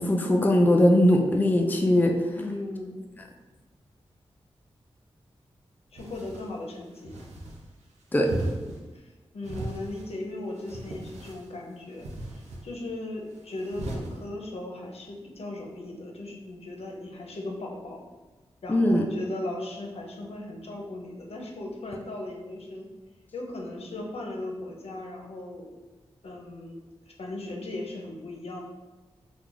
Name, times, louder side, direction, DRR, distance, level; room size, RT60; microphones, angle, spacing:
voice 1, 0.0-2.2 8.1-8.3 18.7-19.0, left 1 dB, 15° left, 1 dB, 0.4 m, -20 dB
voice 2, 2.4-3.0 5.9-7.1 8.9-12.1 12.3-18.0 18.6-22.9 23.3-25.7 26.2-26.8 27.1-28.6, left 2 dB, 65° left, 0 dB, 0.6 m, -37 dB
sound 1, 6.0-6.5 7.0-7.6 8.2-8.8 9.4-10.1 10.6-11.5 12.0-12.6 13.6-14.1, right 1 dB, 85° right, 0.5 m, -36 dB
2.8 x 2.3 x 3.8 m, 1.2 s
cardioid pair, 40°, 11 cm